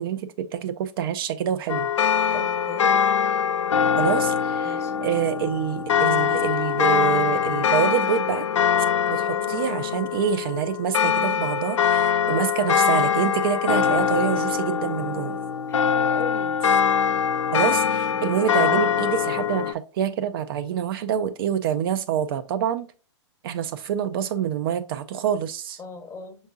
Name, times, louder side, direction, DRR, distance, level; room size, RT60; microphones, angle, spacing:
voice 1, 0.0-1.9 4.0-8.5 9.1-15.4 17.5-22.9 23.4-25.8, right 9 dB, 50° right, 0.4 m, -26 dB
sound 1, 1.7-19.7, left 7 dB, 75° left, 0.5 m, -23 dB
voice 2, 2.3-3.0 4.6-5.0 9.3-9.5 15.7-16.6 18.2-18.3 25.8-26.4, left 5 dB, 15° left, 0.8 m, -38 dB
5.4 x 3.5 x 2.3 m
hypercardioid pair, 120°, 16 cm